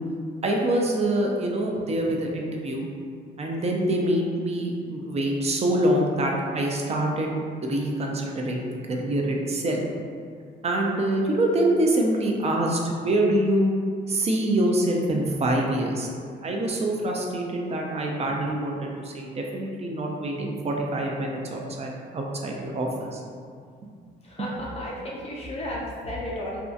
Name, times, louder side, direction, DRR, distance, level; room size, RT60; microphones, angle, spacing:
voice 1, 0.4-2.9 3.4-9.8 10.6-13.7 14.1-16.1 16.4-23.2, right 1 dB, 35° right, 0 dB, 0.4 m, -25 dB
voice 2, 24.2-26.6, left 1 dB, 30° left, -4 dB, 0.4 m, -33 dB
2.6 x 2.2 x 2.4 m, 2.1 s
cardioid pair, 90°, 20 cm